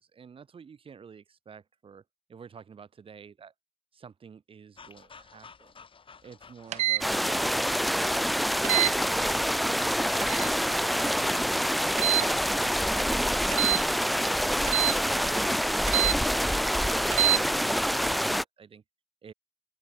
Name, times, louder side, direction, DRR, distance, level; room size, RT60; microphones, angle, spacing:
voice 1, 0.0-2.0 2.3-3.5 3.9-5.8 6.2-7.5 8.9-9.8 12.6-13.7 15.2-18.8 19.2-19.3, right 6 dB, 45° right, 2.3 m, -50 dB
sound 1, 4.8-12.2, left 5 dB, 45° left, 4.7 m, -52 dB
sound 2, 6.7-7.0 8.6-8.9 10.2-10.5 12.0-12.3 13.5-13.8 14.7-15.0 15.9-16.2 17.1-17.4, right 14 dB, 65° right, 0.5 m, -25 dB
sound 3, 7.0-18.4, equal, ahead, 0.3 m, -26 dB
open air
hypercardioid pair, 45°, 13 cm